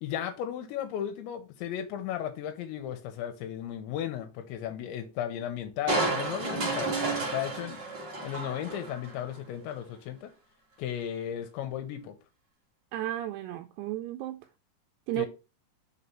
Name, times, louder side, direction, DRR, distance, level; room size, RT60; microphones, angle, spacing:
voice 1, 0.0-7.8 8.2-10.3 10.8-12.1 15.2-15.3, left 10 dB, 80° left, 3.0 m, -35 dB
Crushing, 5.9-9.2 9.7-9.8, right 3 dB, 50° right, 1.3 m, -31 dB
voice 2, 12.9-14.4 15.1-15.3, right 14 dB, 85° right, 2.5 m, -33 dB
6.3 x 4.2 x 5.5 m
omnidirectional pair, 5.2 m